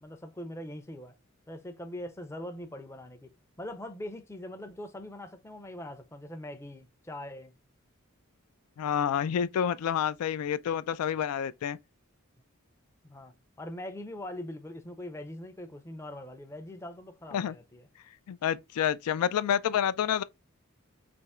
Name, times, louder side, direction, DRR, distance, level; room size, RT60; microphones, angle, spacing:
voice 1, 0.0-1.1 1.5-3.3 3.6-7.5 13.0-17.8, left 1 dB, 10° left, 0.5 m, -42 dB
voice 2, 8.8-11.8 17.3-17.5 18.3-20.2, left 8 dB, 85° left, 0.3 m, -28 dB
3.5 x 2.9 x 4.1 m
head